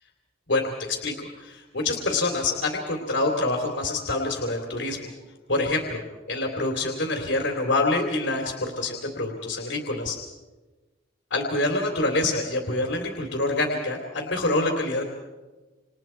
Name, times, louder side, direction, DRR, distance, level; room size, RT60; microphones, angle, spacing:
voice 1, 0.5-5.1 5.5-6.0 6.3-10.1 11.3-15.0, left 2 dB, 70° left, 1 dB, 3.3 m, -26 dB
29.0 x 28.0 x 4.6 m, 1.2 s
head